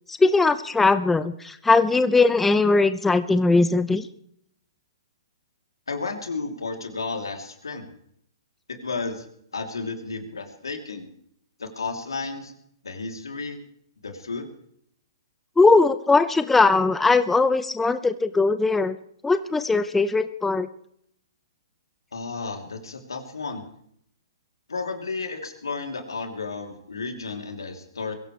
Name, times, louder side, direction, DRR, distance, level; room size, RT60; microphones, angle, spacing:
voice 1, 0.1-4.1 15.6-18.9 19.2-20.7, left 3 dB, 10° left, 12 dB, 0.7 m, -20 dB
voice 2, 5.9-7.9 8.7-9.2 9.5-11.1 11.6-12.5 12.8-13.6 14.0-14.5 22.1-23.6 24.7-28.1, left 4 dB, 85° left, 3 dB, 3.2 m, -32 dB
22.5 x 16.0 x 3.3 m, 0.69 s
hypercardioid pair, 125°, 2 cm